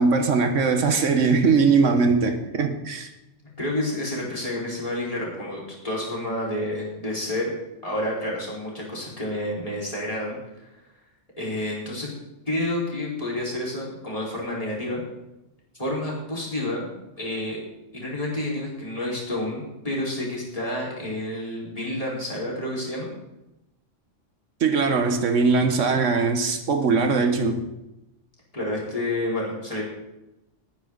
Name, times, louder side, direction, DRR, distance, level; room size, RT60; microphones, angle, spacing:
voice 1, 0.0-3.1 24.6-27.6, right 4 dB, 85° right, 6 dB, 1.6 m, -21 dB
voice 2, 3.6-7.5 7.8-10.7 11.4-12.1 12.5-15.0 15.8-17.6 17.9-23.1 28.5-29.8, left 1 dB, 30° left, -5 dB, 4.6 m, -29 dB
20.0 x 9.8 x 4.0 m, 0.93 s
omnidirectional pair, 1.3 m